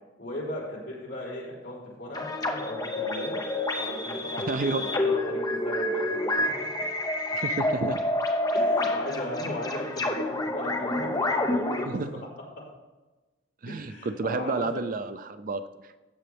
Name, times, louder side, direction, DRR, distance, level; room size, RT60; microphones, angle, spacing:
voice 1, 0.2-3.4 3.8-6.7 8.5-12.2 13.7-14.8, left 1 dB, 60° left, -5 dB, 3.9 m, -37 dB
sound 1, 2.1-11.9, left 1 dB, 20° left, 0.8 m, -28 dB
voice 2, 4.5-4.8 7.3-8.0 11.9-12.1 13.6-15.6, right 3 dB, 45° right, 11 dB, 0.4 m, -30 dB
14.5 x 7.5 x 3.4 m, 1.2 s
head